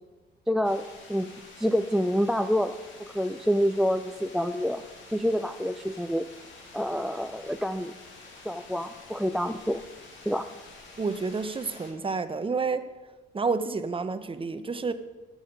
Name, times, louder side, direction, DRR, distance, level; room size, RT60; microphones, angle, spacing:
voice 1, 0.5-1.3 1.6-4.8 5.1-6.3 6.7-7.9 8.4-9.8 10.3-10.5, equal, ahead, 0.3 m, -27 dB
sound 1, 0.6-11.9, left 3 dB, 70° left, 2.1 m, -49 dB
voice 2, 11.0-12.9 13.3-14.9, right 4 dB, 25° right, 0.8 m, -29 dB
14.0 x 6.4 x 5.1 m
cardioid pair, 90°, 20 cm